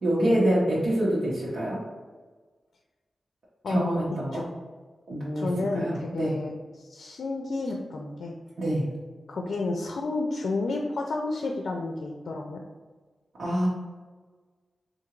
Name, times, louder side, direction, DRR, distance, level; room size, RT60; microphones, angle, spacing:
voice 1, 0.0-1.8 3.7-4.4 5.1-5.5 5.7-6.4 8.6-8.9 13.4-13.7, right 1 dB, 75° right, -8 dB, 1.1 m, -26 dB
voice 2, 3.6-4.0 4.3-4.5 5.3-8.3 9.3-12.6, left 2 dB, 80° left, 1 dB, 0.5 m, -31 dB
3.8 x 2.6 x 4.5 m, 1.4 s
wide cardioid pair, 135°, 0 cm